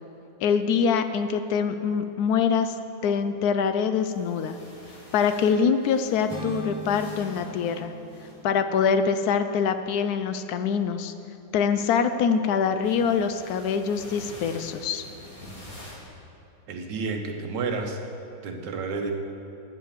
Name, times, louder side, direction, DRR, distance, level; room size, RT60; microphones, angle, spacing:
voice 1, 0.4-2.7 3.0-4.6 5.1-7.9 8.4-11.1 11.5-15.0, left 6 dB, 75° left, 9 dB, 0.9 m, -24 dB
sound 1, 3.8-8.9 10.6-10.9 12.8-16.0, left 1 dB, 30° left, 2.1 m, -47 dB
sound 2, 6.3-10.3, right 1 dB, 15° left, 0.9 m, -41 dB
voice 2, 16.7-18.0 18.4-19.1, right 4 dB, 70° right, 3 dB, 1.6 m, -30 dB
9.2 x 7.9 x 7.4 m, 2.9 s
omnidirectional pair, 2.1 m